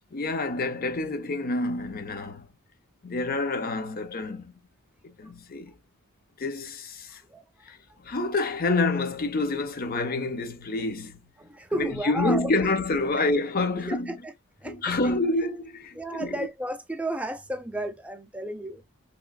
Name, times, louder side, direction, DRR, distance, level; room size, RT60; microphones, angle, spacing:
voice 1, 0.1-2.4 3.0-4.4 5.0-5.7 6.4-7.2 7.6-7.8 8.0-11.2 11.7-14.1 14.6-16.3, left 2 dB, 45° left, 0.7 m, -28 dB
voice 2, 7.3-7.7 11.4-12.5 13.8-14.3 14.6-15.1 15.9-18.8, right 1 dB, 5° right, 0.5 m, -33 dB
3.8 x 3.0 x 2.4 m
head